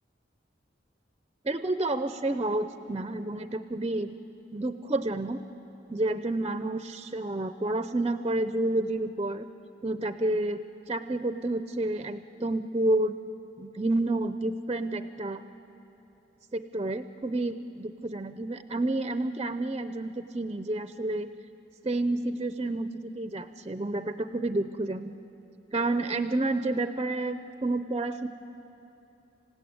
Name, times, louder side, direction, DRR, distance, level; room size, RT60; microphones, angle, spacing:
voice 1, 1.4-4.2 4.5-5.4 5.9-9.5 9.8-13.2 13.6-15.4 16.5-21.3 21.8-25.1 25.7-28.3, right 2 dB, 25° right, 11 dB, 0.6 m, -30 dB
26.5 x 16.5 x 9.5 m, 3.0 s
head